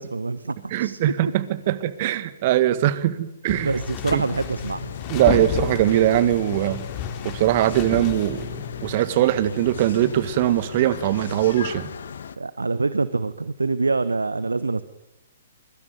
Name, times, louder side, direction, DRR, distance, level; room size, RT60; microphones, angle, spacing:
voice 1, 0.0-1.0 3.6-4.9 12.4-14.8, right 3 dB, 75° right, 15 dB, 1.1 m, -25 dB
voice 2, 0.7-3.7 4.1-4.2 5.1-6.8 7.2-8.6 8.8-11.9, right 13 dB, 40° right, 15 dB, 1.7 m, -21 dB
sound 1, 3.5-8.9, left 8 dB, 30° left, 3.8 m, -32 dB
sound 2, 4.1-12.4, left 7 dB, 60° left, 1.7 m, -37 dB
24.0 x 22.5 x 9.4 m, 0.92 s
figure-of-eight pair, 120°, 0 cm